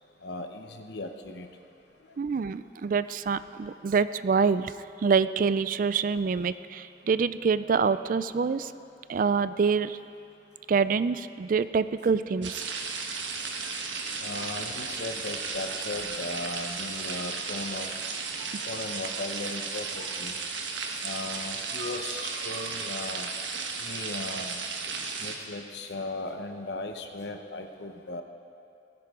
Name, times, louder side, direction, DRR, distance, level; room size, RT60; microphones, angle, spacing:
voice 1, 0.2-1.5 14.2-17.9 18.6-20.3 21.0-23.3 23.8-24.6 25.2-28.2, left 2 dB, 65° left, 6 dB, 0.9 m, -37 dB
voice 2, 2.2-4.7 5.0-8.7 9.1-10.0 10.7-12.7, right 5 dB, 45° right, 14 dB, 0.3 m, -26 dB
sound 1, 12.4-25.4, right 4 dB, 85° right, 1.3 m, -34 dB
17.5 x 15.0 x 3.7 m, 2.6 s
head